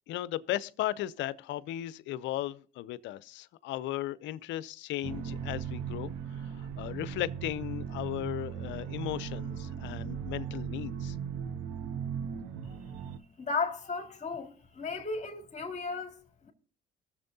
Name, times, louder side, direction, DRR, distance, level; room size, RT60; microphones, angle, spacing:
voice 1, 0.1-11.2, left 14 dB, 70° left, 0.6 m, -36 dB
sound 1, 5.0-13.2, right 8 dB, 85° right, 0.8 m, -38 dB
voice 2, 13.4-16.5, left 4 dB, 35° left, 2.4 m, -35 dB
21.5 x 7.3 x 2.8 m
hypercardioid pair, 65°, 20 cm